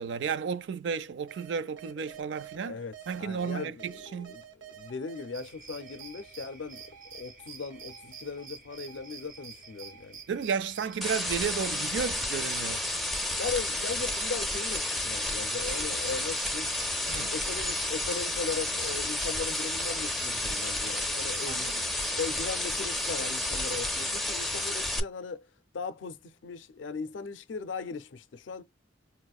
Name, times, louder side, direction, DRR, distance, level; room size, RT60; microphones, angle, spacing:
voice 1, 0.0-2.8 3.1-4.3 10.3-12.8 17.1-17.3 21.5-21.8, right 6 dB, 70° right, 0.4 m, -33 dB
sound 1, 1.3-2.6 2.9-5.4 5.8-8.5 8.7-15.6 16.0-20.9, right 7 dB, 85° right, 0.7 m, -54 dB
voice 2, 2.6-6.8 7.1-10.2 13.4-16.7 17.0-21.7 22.2-25.5 25.7-28.6, left 4 dB, 80° left, 0.5 m, -38 dB
sound 2, 5.3-23.9, right 6 dB, 50° right, 1.0 m, -48 dB
sound 3, 11.0-25.0, left 1 dB, ahead, 0.5 m, -31 dB
4.8 x 2.1 x 2.3 m
head